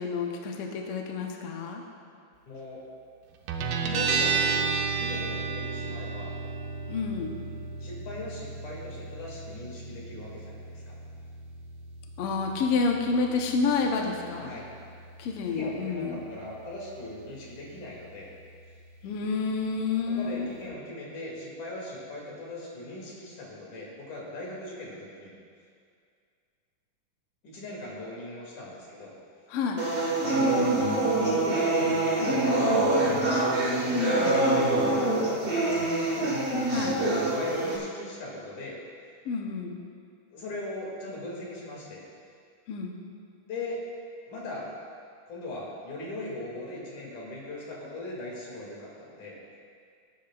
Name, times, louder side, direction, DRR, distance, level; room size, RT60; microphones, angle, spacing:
voice 1, 0.0-1.8 6.9-7.3 12.2-14.5 15.2-16.3 19.0-20.5 29.5-29.8 34.0-34.4 36.7-37.0 39.2-39.8 42.7-43.0, left 4 dB, 80° left, 1 dB, 1.3 m, -29 dB
voice 2, 2.5-2.8 3.9-4.7 4.9-6.3 7.8-10.9 14.4-14.6 15.4-18.3 20.1-25.3 27.4-29.1 30.3-36.2 36.8-38.8 40.3-42.0 43.5-43.8 44.3-44.7 45.3-49.6, left 2 dB, 60° left, -4 dB, 3.8 m, -39 dB
Guitar, 3.5-20.7, right 4 dB, 80° right, 2.4 m, -35 dB
sound 1, 29.8-37.8, right 2 dB, 55° right, 0.6 m, -25 dB
19.0 x 10.0 x 2.5 m, 2.3 s
omnidirectional pair, 4.1 m